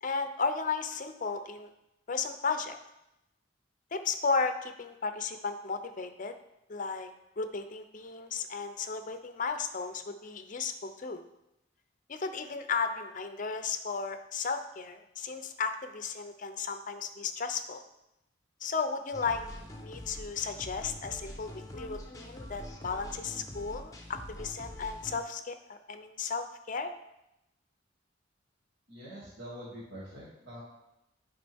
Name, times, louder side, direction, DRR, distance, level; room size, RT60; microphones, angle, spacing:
voice 1, 0.0-1.7 2.1-2.8 3.9-6.4 6.7-7.1 7.4-11.2 12.1-17.8 18.6-19.4 19.8-26.9, left 5 dB, 45° left, 8 dB, 0.6 m, -34 dB
sound 1, 19.1-25.2, left 1 dB, 20° left, 0.8 m, -45 dB
voice 2, 28.9-30.6, equal, 75° right, -9 dB, 2.2 m, -45 dB
9.1 x 5.1 x 3.5 m, 0.88 s
head